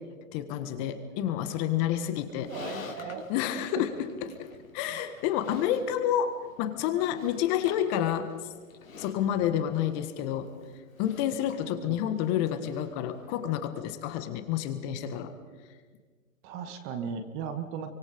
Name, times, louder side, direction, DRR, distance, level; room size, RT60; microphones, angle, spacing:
voice 1, 0.3-2.5 3.3-4.1 4.4-4.5 4.7-8.3 9.0-10.5 11.0-15.3, left 10 dB, 30° left, 9 dB, 1.7 m, -29 dB
Livestock farm animals working animals, 2.2-13.4, left 5 dB, 80° left, 3.9 m, -49 dB
voice 2, 2.5-3.3 3.8-3.9 11.8-12.0 16.4-18.0, right 6 dB, 30° right, 8 dB, 2.1 m, -36 dB
28.0 x 24.5 x 5.3 m, 1.5 s
hypercardioid pair, 140°, 40 cm